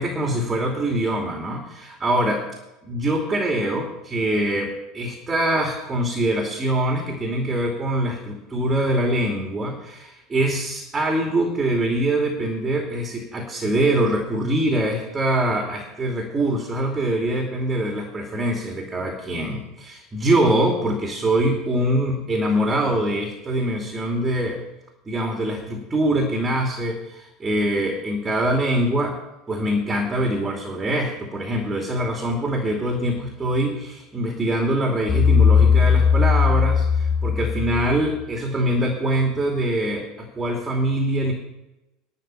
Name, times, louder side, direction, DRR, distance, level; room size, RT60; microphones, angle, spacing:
voice 1, 0.0-2.4 2.8-24.6 25.1-29.2 29.5-41.3, right 1 dB, 20° right, 1 dB, 2.7 m, -23 dB
sound 1, 35.1-38.2, left 6 dB, 30° left, 1.1 m, -18 dB
11.5 x 5.9 x 9.2 m, 0.95 s
figure-of-eight pair, 70°, 0 cm